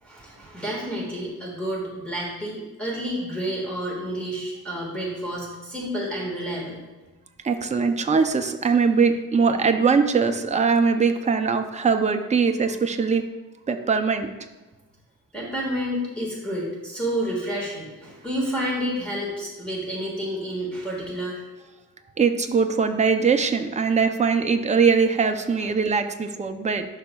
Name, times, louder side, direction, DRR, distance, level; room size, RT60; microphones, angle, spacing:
voice 1, 0.0-6.8 15.3-21.4, equal, 5° left, -6 dB, 1.6 m, -30 dB
voice 2, 7.4-13.3 13.7-14.3 22.2-26.9, right 5 dB, 20° right, 6 dB, 0.4 m, -21 dB
11.5 x 5.6 x 2.2 m, 1.2 s
wide cardioid pair, 175°, 34 cm